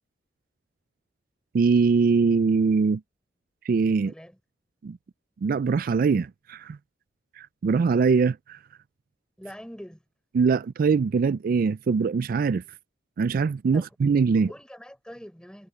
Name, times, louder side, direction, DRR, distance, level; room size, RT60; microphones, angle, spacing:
voice 1, 1.5-3.0 3.7-4.1 4.8-5.0 5.4-6.8 7.4-8.6 10.3-12.6 13.2-14.5, right 5 dB, 50° right, 0.3 m, -22 dB
voice 2, 4.0-4.4 9.4-10.0 13.7-13.8 14.5-15.7, equal, 5° left, 5.0 m, -43 dB
head